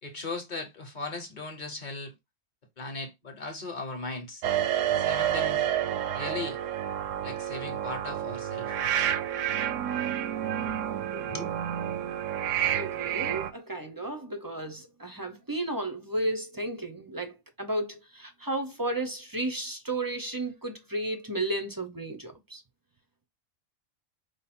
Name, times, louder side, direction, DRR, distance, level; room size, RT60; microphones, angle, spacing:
voice 1, 0.0-2.2 2.8-4.4 5.0-5.7 6.1-6.6 7.2-8.8 10.6-10.8 11.1-11.6, left 3 dB, 40° left, 0.9 m, -38 dB
sound 1, 4.4-13.5, right 10 dB, 75° right, 0.9 m, -29 dB
voice 2, 12.7-22.6, right 1 dB, 25° right, 0.4 m, -33 dB
5.2 x 2.1 x 4.2 m
omnidirectional pair, 1.4 m